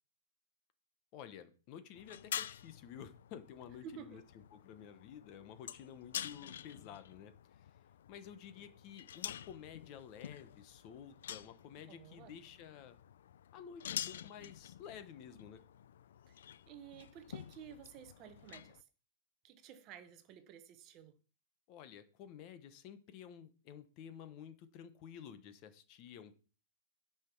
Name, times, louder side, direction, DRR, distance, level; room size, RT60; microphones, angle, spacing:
voice 1, 1.1-4.2 4.5-7.3 7.6-7.7 8.1-13.0 13.5-15.6 21.7-26.3, left 8 dB, 25° left, 0.9 m, -52 dB
sound 1, 2.0-18.8, left 10 dB, 60° left, 0.5 m, -48 dB
voice 2, 3.8-4.2 11.9-12.4 16.3-18.8 19.4-21.2, right 8 dB, 25° right, 0.9 m, -53 dB
10.0 x 5.7 x 6.1 m
hypercardioid pair, 175°, 0 cm